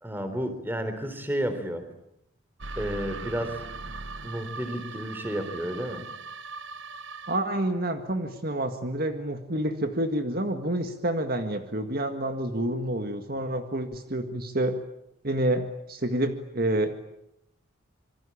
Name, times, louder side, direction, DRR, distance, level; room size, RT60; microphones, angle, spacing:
voice 1, 0.0-1.8 2.8-3.6 4.2-6.1, equal, 10° right, 9 dB, 3.8 m, -31 dB
sound 1, 2.6-7.6, right 3 dB, 65° right, 1.1 m, -39 dB
voice 2, 7.3-14.8 15.2-16.9, right 1 dB, 45° right, 6 dB, 1.9 m, -28 dB
27.5 x 24.5 x 8.7 m, 0.79 s
head